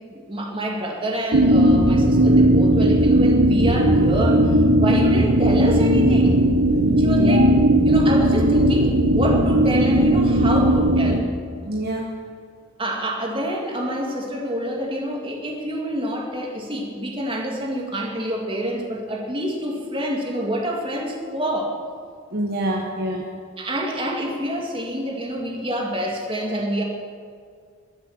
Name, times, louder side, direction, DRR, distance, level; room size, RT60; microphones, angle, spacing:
voice 1, 0.1-6.4 7.0-7.5 7.8-11.2 12.8-21.8 23.6-26.8, equal, 25° right, -1 dB, 2.5 m, -27 dB
sound 1, 1.3-11.2, right 1 dB, 80° right, 1.2 m, -17 dB
voice 2, 6.7-7.5 11.6-12.1 22.3-23.3, right 1 dB, 50° right, 1 dB, 1.1 m, -26 dB
22.0 x 7.6 x 7.5 m, 2.1 s
head